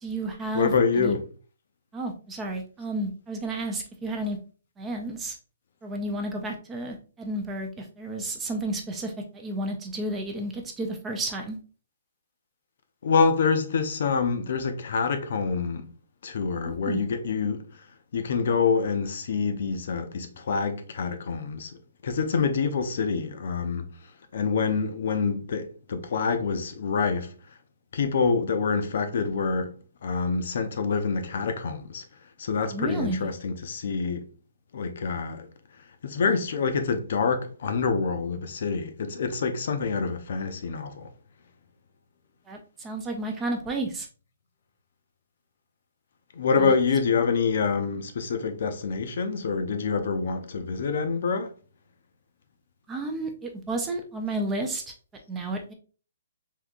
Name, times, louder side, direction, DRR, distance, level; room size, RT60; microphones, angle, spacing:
voice 1, 0.0-1.2 1.9-4.4 4.8-5.4 5.8-11.6 16.6-17.0 32.7-33.3 42.5-44.1 46.6-46.8 52.9-54.9 55.3-55.7, right 2 dB, 10° right, 0.3 m, -32 dB
voice 2, 0.5-1.2 13.0-15.9 16.2-17.9 18.1-21.8 22.0-23.9 24.3-27.4 27.9-32.1 32.4-34.3 34.7-35.5 36.0-41.1 46.3-51.5, left 5 dB, 50° left, 0.5 m, -26 dB
3.6 x 2.7 x 2.3 m
hypercardioid pair, 170°, 0 cm